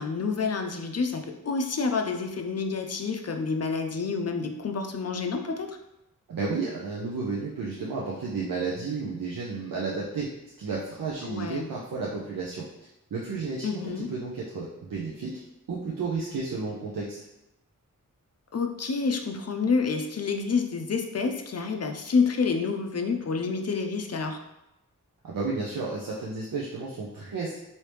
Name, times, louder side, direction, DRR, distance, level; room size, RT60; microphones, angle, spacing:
voice 1, 0.0-5.8 11.2-11.7 13.6-14.1 18.5-24.4, left 4 dB, 50° left, 5 dB, 0.5 m, -28 dB
voice 2, 6.3-10.3 10.6-12.6 13.1-15.3 15.7-17.3 25.2-27.6, right 4 dB, 85° right, -4 dB, 0.6 m, -32 dB
3.1 x 2.7 x 3.2 m, 0.90 s
cardioid pair, 45°, 33 cm